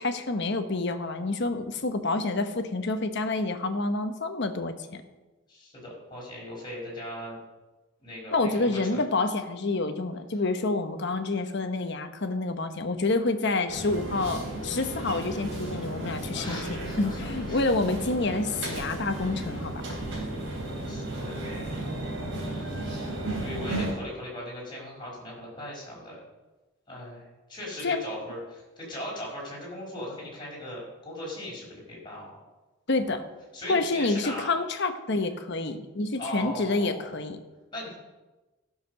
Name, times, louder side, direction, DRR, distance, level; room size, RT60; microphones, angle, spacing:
voice 1, 0.0-5.0 8.3-20.0 27.8-28.1 32.9-33.2 33.7-37.4, left 3 dB, 55° left, 8 dB, 1.0 m, -28 dB
voice 2, 5.5-7.4 8.0-9.0 16.3-17.2 17.5-17.6 20.9-21.4 21.7-22.5 23.4-26.2 26.9-32.3 33.5-34.5 36.2-37.1 37.7-37.9, left 1 dB, 20° left, -4 dB, 4.8 m, -39 dB
sound 1, 13.7-23.9, right 1 dB, 60° right, 3.6 m, -34 dB
14.5 x 6.6 x 6.5 m, 1.1 s
head